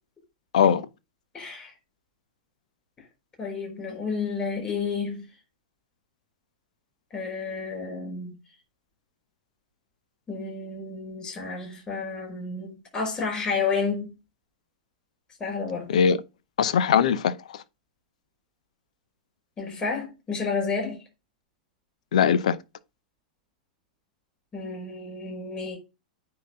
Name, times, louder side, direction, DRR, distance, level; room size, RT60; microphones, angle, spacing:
voice 1, 1.3-1.7 3.4-5.2 7.1-8.4 10.3-14.1 15.4-15.9 19.6-21.0 24.5-25.8, left 4 dB, 20° left, 5.4 m, -31 dB
voice 2, 15.9-16.2 16.6-17.6 22.1-22.6, left 7 dB, 65° left, 0.7 m, -21 dB
9.6 x 3.9 x 4.0 m
figure-of-eight pair, 100°, 4 cm